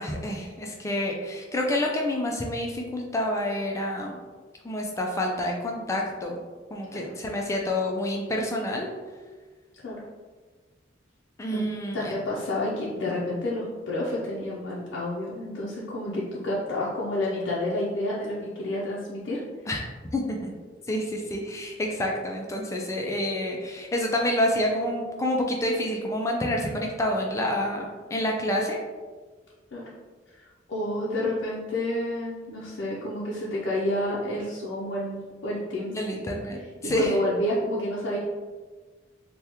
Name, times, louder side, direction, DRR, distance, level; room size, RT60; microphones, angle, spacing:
voice 1, 0.0-4.2 4.6-6.4 6.7-8.9 11.4-12.1 19.7-19.8 20.1-20.5 20.9-28.8 36.0-37.2, left 1 dB, 15° left, 0 dB, 0.3 m, -28 dB
voice 2, 11.9-19.4 29.7-29.8 30.4-36.2 36.8-38.2, left 1 dB, 70° left, -6 dB, 0.5 m, -29 dB
3.4 x 2.2 x 2.9 m, 1.4 s
head